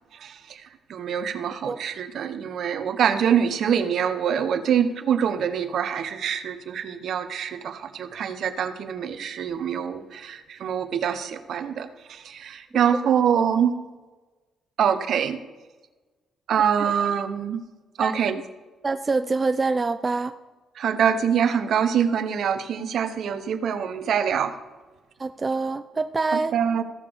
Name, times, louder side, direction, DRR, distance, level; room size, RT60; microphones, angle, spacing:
voice 1, 0.1-0.6 0.9-13.7 14.8-15.4 16.5-17.7 18.0-18.4 20.8-24.6 26.3-26.8, right 8 dB, 65° right, 0.8 m, -25 dB
voice 2, 18.8-20.4 25.2-26.5, right 3 dB, 30° right, 0.4 m, -25 dB
15.5 x 6.7 x 3.5 m
cardioid pair, 90°, 0 cm